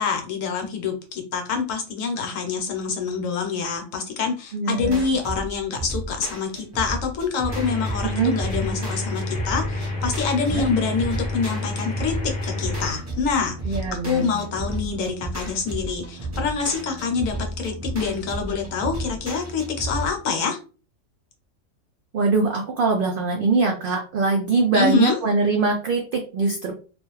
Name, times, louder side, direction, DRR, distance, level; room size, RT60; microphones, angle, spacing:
voice 1, 0.0-13.8 14.0-17.4 17.6-20.6 24.7-25.2, left 5 dB, 70° left, 3 dB, 1.0 m, -26 dB
voice 2, 4.5-5.0 8.0-8.4 10.5-10.7 13.6-14.3 22.1-26.7, right 3 dB, 80° right, 2 dB, 0.4 m, -22 dB
sound 1, 4.8-20.1, right 1 dB, 20° right, 0.5 m, -33 dB
sound 2, 7.5-12.9, left 2 dB, 30° left, 0.8 m, -29 dB
2.4 x 2.2 x 3.0 m, 0.36 s
omnidirectional pair, 1.5 m